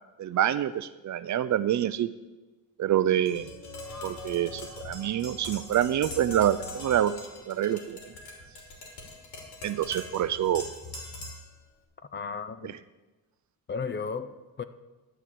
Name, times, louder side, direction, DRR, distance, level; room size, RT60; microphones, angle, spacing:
voice 1, 0.2-2.1 2.8-3.5 4.0-7.1 7.5-8.1 9.6-10.6 12.6-12.7, right 11 dB, 50° right, 14 dB, 0.5 m, -26 dB
Tap, 3.3-11.5, left 2 dB, 85° left, 2.9 m, -42 dB
sound 1, 3.4-8.6, left 1 dB, 60° left, 2.7 m, -49 dB
voice 2, 12.1-12.8 13.7-14.6, left 5 dB, 30° left, 12 dB, 0.6 m, -34 dB
12.0 x 4.6 x 8.4 m, 1.2 s
cardioid pair, 105°, 38 cm